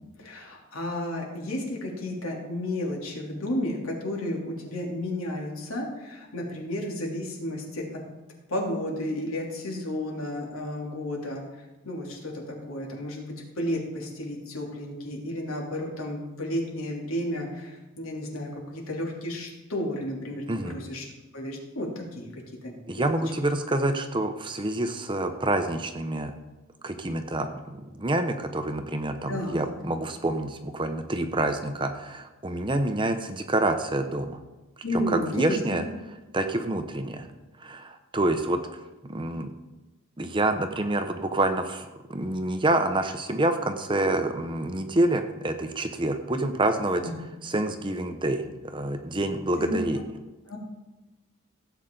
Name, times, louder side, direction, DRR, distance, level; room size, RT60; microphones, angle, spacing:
voice 1, 0.2-8.0 8.5-21.0 21.3-22.3 22.6-23.1 29.3-29.6 34.8-35.9 47.0-47.1 49.6-49.8 50.5-50.6, left 1 dB, 80° left, -1 dB, 2.9 m, -32 dB
voice 2, 22.9-26.3 26.8-34.4 35.1-35.8 36.3-37.3 37.6-38.6 39.1-39.5 40.2-47.0 47.4-50.0, right 1 dB, 20° right, 7 dB, 0.7 m, -27 dB
16.0 x 8.2 x 3.8 m, 1.1 s
head